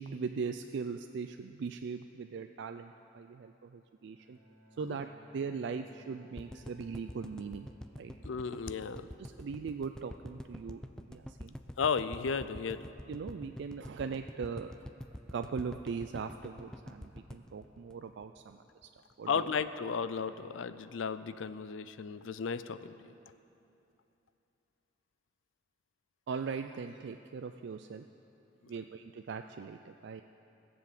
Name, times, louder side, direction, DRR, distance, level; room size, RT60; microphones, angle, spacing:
voice 1, 0.0-4.4 4.8-7.7 8.0-8.1 9.2-10.8 11.1-11.6 13.1-14.7 15.3-18.9 19.2-19.5 26.3-28.1 28.7-30.2, right 5 dB, 65° right, 7 dB, 0.4 m, -40 dB
Bowed string instrument, 4.2-9.2, right 1 dB, 50° right, 3.1 m, -60 dB
sound 1, 6.4-18.5 18.8-18.9 19.1-19.2, equal, 5° left, 0.4 m, -46 dB
voice 2, 8.2-9.1 11.8-12.8 19.3-23.0, left 6 dB, 80° left, 13 dB, 0.5 m, -34 dB
17.0 x 7.0 x 7.4 m, 2.8 s
head